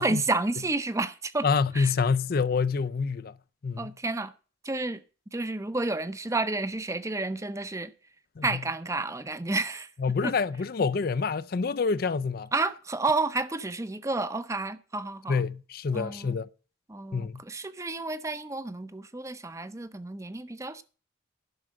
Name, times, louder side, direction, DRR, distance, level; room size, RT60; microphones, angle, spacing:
voice 1, 0.0-1.5 1.7-1.9 3.8-4.3 4.6-5.0 5.3-7.9 8.4-9.9 10.2-10.3 12.5-15.4 15.9-16.4 16.9-20.8, right 2 dB, 15° right, 0.6 m, -30 dB
voice 2, 1.4-3.4 3.6-3.9 8.4-8.6 10.0-12.5 15.3-16.5 17.1-17.4, left 5 dB, 50° left, 0.4 m, -27 dB
11.0 x 6.2 x 7.4 m
head